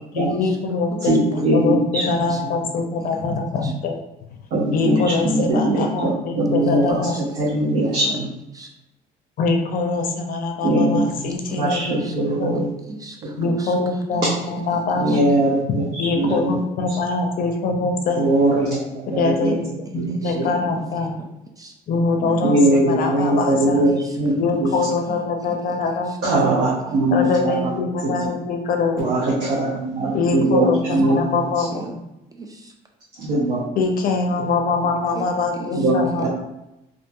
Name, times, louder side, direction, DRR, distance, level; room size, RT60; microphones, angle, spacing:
voice 1, 0.1-4.0 4.7-7.2 9.4-12.6 13.4-15.3 15.8-18.3 19.1-21.2 21.9-23.8 24.3-26.4 27.1-29.0 30.1-32.0 33.8-36.3, left 3 dB, 60° left, 4 dB, 0.5 m, -23 dB
voice 2, 1.1-2.0 4.5-6.1 6.4-7.0 7.4-8.3 10.6-11.0 11.5-12.7 15.0-15.8 16.1-16.5 18.2-18.8 19.1-19.5 19.9-20.0 20.3-20.5 22.4-23.9 24.2-24.3 24.6-24.7 26.2-27.7 28.0-28.1 29.0-31.2 33.2-33.6 35.7-35.9 36.2-36.3, right 1 dB, 85° right, -7 dB, 0.8 m, -20 dB
voice 3, 12.5-13.7 14.1-14.2 14.7-14.8 15.1-15.2 20.1-20.3 21.0-21.1 21.6-21.7 23.9-24.2 24.5-24.7 25.1-25.2 26.9-27.0 31.7-31.9 32.3-32.7 35.1-35.3 35.6-35.7 36.2-36.3, right 3 dB, 20° right, 2 dB, 0.3 m, -37 dB
2.7 x 2.5 x 2.3 m, 0.90 s
cardioid pair, 110°, 17 cm